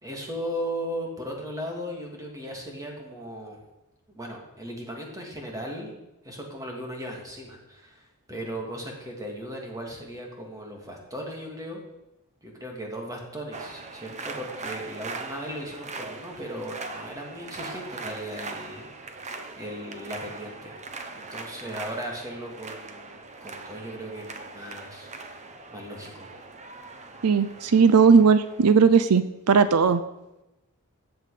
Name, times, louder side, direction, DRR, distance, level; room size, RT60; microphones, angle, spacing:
voice 1, 0.0-3.6 4.1-11.9 12.4-19.1 19.6-20.7 21.1-25.1 25.7-26.3, equal, 15° right, 0 dB, 2.5 m, -37 dB
sound 1, 13.5-29.0, right 3 dB, 30° right, 1.0 m, -40 dB
voice 2, 27.2-30.0, right 5 dB, 80° right, 13 dB, 0.5 m, -18 dB
14.5 x 8.1 x 5.0 m, 0.97 s
head